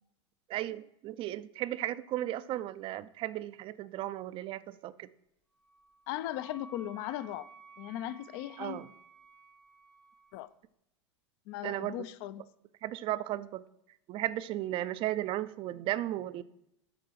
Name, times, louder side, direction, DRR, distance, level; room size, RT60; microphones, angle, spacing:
voice 1, 0.5-5.1 8.6-8.9 11.6-12.0 12.8-13.6 14.1-16.4, right 14 dB, 35° right, 0.4 m, -35 dB
Wind instrument woodwind instrument, 5.6-10.4, right 3 dB, 5° left, 0.7 m, -55 dB
voice 2, 6.1-7.5 7.8-8.8 10.3-10.5 11.5-12.4, left 13 dB, 50° left, 0.5 m, -38 dB
7.7 x 4.3 x 6.1 m
hypercardioid pair, 115°, 15 cm